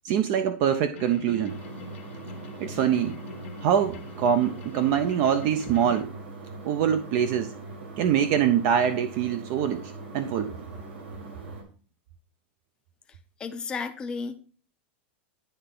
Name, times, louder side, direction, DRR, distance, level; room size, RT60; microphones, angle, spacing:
voice 1, 0.0-1.6 2.6-3.2 3.6-6.2 6.6-7.5 8.0-10.6, right 9 dB, 40° right, 0.4 m, -24 dB
sound 1, 0.9-6.0, left 5 dB, 85° left, 0.9 m, -44 dB
sound 2, 1.5-11.6, right 3 dB, 70° right, 1.8 m, -41 dB
voice 2, 13.4-14.4, left 5 dB, 15° left, 0.5 m, -33 dB
9.9 x 3.3 x 3.6 m
supercardioid pair, 165°, 7 cm